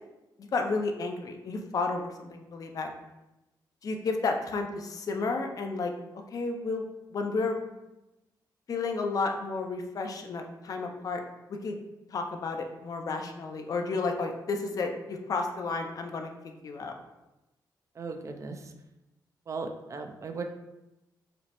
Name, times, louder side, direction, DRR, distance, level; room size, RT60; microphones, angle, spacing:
voice 1, 0.4-2.9 3.8-5.9 6.3-6.8 7.1-7.7 8.7-11.2 11.5-11.8 12.1-16.3 16.6-16.9, left 3 dB, 50° left, 4 dB, 0.4 m, -32 dB
voice 2, 17.9-18.7 19.5-20.4, right 4 dB, 45° right, 5 dB, 0.4 m, -37 dB
4.9 x 2.0 x 2.9 m, 0.96 s
cardioid pair, 115°, 8 cm